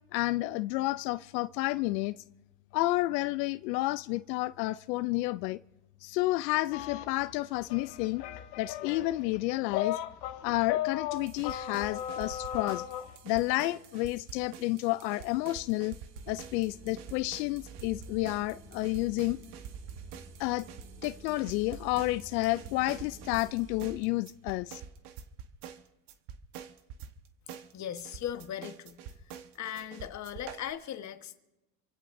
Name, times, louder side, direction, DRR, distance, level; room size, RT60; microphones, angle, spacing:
voice 1, 0.1-2.2 2.7-5.6 6.0-8.2 8.6-10.0 10.4-12.9 13.2-16.0 16.3-19.4 20.4-20.7 21.0-24.8, left 19 dB, 85° left, 0.6 m, -30 dB
sound 1, 6.7-13.2, left 12 dB, 55° left, 1.4 m, -36 dB
sound 2, 11.2-30.7, right 8 dB, 55° right, 1.3 m, -47 dB
sound 3, 16.1-24.0, right 4 dB, 25° right, 2.7 m, -50 dB
voice 2, 27.7-29.0 29.5-31.4, left 10 dB, 35° left, 1.2 m, -38 dB
27.5 x 16.0 x 2.6 m
supercardioid pair, 125°, 49 cm